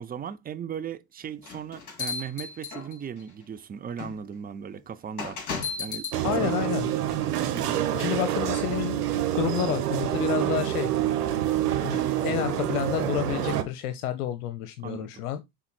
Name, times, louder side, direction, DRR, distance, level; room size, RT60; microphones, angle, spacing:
voice 1, 0.0-5.4 5.8-6.6 7.5-7.8 14.8-15.1, right 7 dB, 20° right, 0.6 m, -37 dB
sound 1, 1.4-3.2 4.0-4.1 5.2-6.2, left 5 dB, 40° left, 3.8 m, -34 dB
sound 2, 6.1-13.6, right 11 dB, 90° right, 1.1 m, -27 dB
voice 2, 6.2-6.9 7.9-9.1 9.4-10.9 11.8-15.4, left 12 dB, 75° left, 0.8 m, -30 dB
5.7 x 3.8 x 4.5 m
hypercardioid pair, 90°, 45 cm